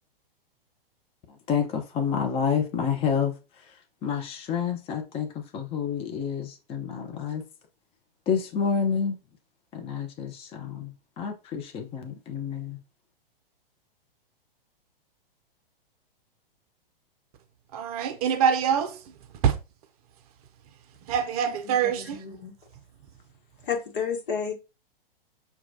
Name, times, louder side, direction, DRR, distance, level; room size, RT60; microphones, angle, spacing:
voice 1, 1.5-3.3 4.0-7.4 8.3-9.2 9.7-12.8, left 7 dB, 20° left, 0.6 m, -29 dB
voice 2, 17.7-19.0 19.4-19.5 21.1-22.2, right 8 dB, 40° right, 0.6 m, -24 dB
voice 3, 21.4-22.5 23.6-24.5, left 6 dB, 60° left, 1.2 m, -32 dB
5.8 x 2.3 x 2.7 m
figure-of-eight pair, 110°, 29 cm